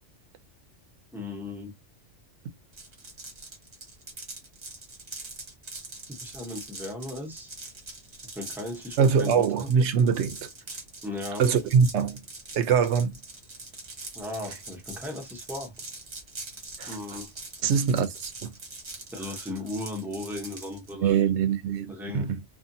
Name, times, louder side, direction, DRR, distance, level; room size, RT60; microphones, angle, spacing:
voice 1, 1.1-1.7 6.2-7.5 8.4-9.7 11.0-11.4 14.1-15.7 16.9-17.3 19.1-21.2 21.9-22.3, left 2 dB, ahead, 0.5 m, -36 dB
sound 1, 2.7-20.9, right 3 dB, 40° right, 0.9 m, -43 dB
voice 2, 9.0-10.5 11.4-12.2 12.5-13.2 16.8-17.2 17.6-18.5 21.0-22.4, right 6 dB, 70° right, 0.8 m, -23 dB
2.7 x 2.5 x 2.5 m
omnidirectional pair, 1.3 m